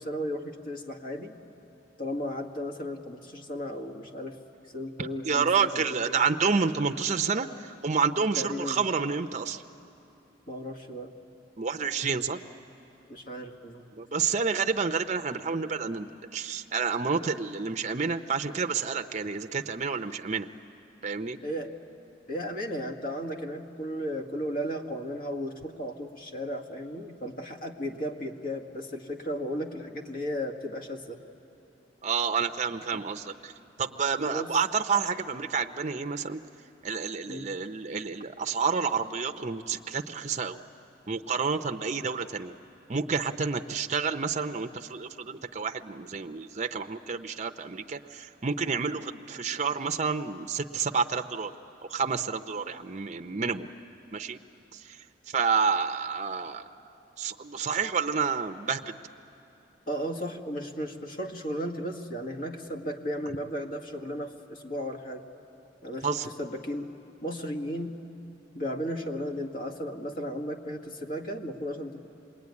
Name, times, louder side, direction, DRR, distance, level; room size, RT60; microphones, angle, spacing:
voice 1, 0.0-1.4 2.0-4.4 4.7-6.2 8.4-8.8 10.5-11.1 13.1-13.8 21.4-21.7 22.3-31.2 32.9-33.0 34.3-34.5 37.3-37.5 59.9-65.2 65.8-66.9 67.2-68.0 68.6-72.1, equal, 50° left, 4 dB, 1.7 m, -35 dB
voice 2, 5.0-9.6 11.6-12.4 14.0-20.5 21.0-21.4 32.0-33.5 33.8-36.4 36.8-40.6 41.1-42.5 42.9-51.5 51.9-53.7 54.1-54.4 54.7-56.7 57.2-58.9 66.0-66.3, right 5 dB, 40° right, 6 dB, 0.7 m, -29 dB
26.0 x 21.5 x 9.6 m, 2.8 s
head